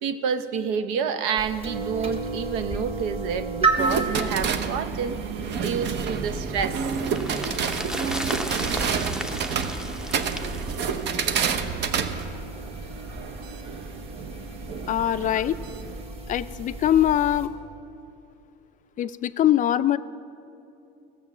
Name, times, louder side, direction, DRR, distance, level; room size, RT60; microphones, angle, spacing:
voice 1, 0.0-5.2 5.6-6.8 8.9-9.3, right 6 dB, 85° right, 10 dB, 0.8 m, -29 dB
sound 1, 1.4-17.5, right 3 dB, 30° right, 1.6 m, -33 dB
sound 2, 3.8-16.0, right 6 dB, 55° right, 0.8 m, -29 dB
sound 3, 6.3-11.7 12.0-12.1, equal, 5° right, 0.6 m, -35 dB
voice 2, 14.9-15.6 16.3-17.5 19.0-20.0, left 11 dB, 40° left, 14 dB, 0.4 m, -22 dB
15.0 x 6.8 x 7.3 m, 2.7 s
cardioid pair, 110°, 21 cm